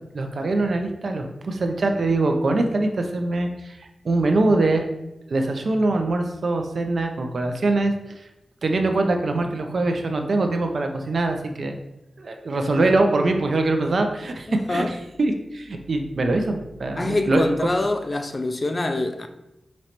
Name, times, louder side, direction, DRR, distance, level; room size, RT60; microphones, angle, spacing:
voice 1, 0.1-4.9 5.3-7.9 8.6-11.8 12.2-17.5, right 2 dB, 60° right, 0.5 m, -23 dB
voice 2, 14.5-14.9 17.0-19.3, left 2 dB, 30° left, 0.3 m, -25 dB
5.1 x 3.1 x 2.9 m
wide cardioid pair, 130°, 0 cm